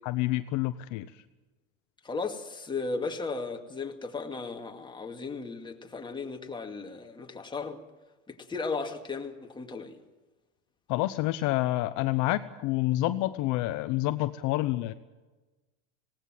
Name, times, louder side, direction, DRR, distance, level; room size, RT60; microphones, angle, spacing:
voice 1, 0.0-1.2 10.9-14.9, left 16 dB, 50° left, 11 dB, 0.9 m, -28 dB
voice 2, 2.0-7.8 8.3-10.0, left 4 dB, 15° left, 3 dB, 2.1 m, -36 dB
19.0 x 18.0 x 7.6 m, 1.2 s
supercardioid pair, 120°, 36 cm